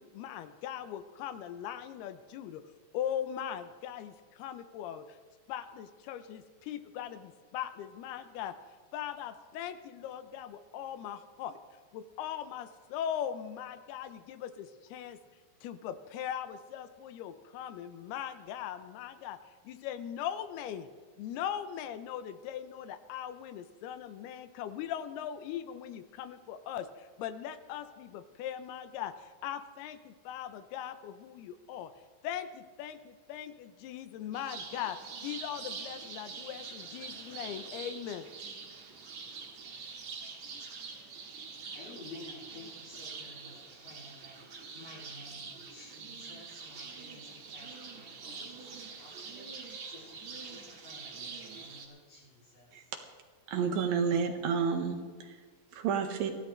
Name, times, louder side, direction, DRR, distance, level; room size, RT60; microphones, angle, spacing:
voice 1, 0.0-2.6 2.9-5.2 5.5-8.6 8.9-11.6 11.9-15.2 15.6-19.4 19.6-20.9 21.2-31.9 32.2-38.3, left 10 dB, 80° left, 10 dB, 2.7 m, -40 dB
sound 1, 34.3-51.9, right 5 dB, 50° right, 2.8 m, -45 dB
voice 2, 41.1-41.5 41.7-52.9, left 2 dB, 65° left, -8 dB, 5.9 m, -53 dB
voice 3, 53.5-55.4 55.7-56.3, right 6 dB, 70° right, 4 dB, 3.2 m, -30 dB
23.5 x 16.0 x 3.3 m, 1.5 s
omnidirectional pair, 4.6 m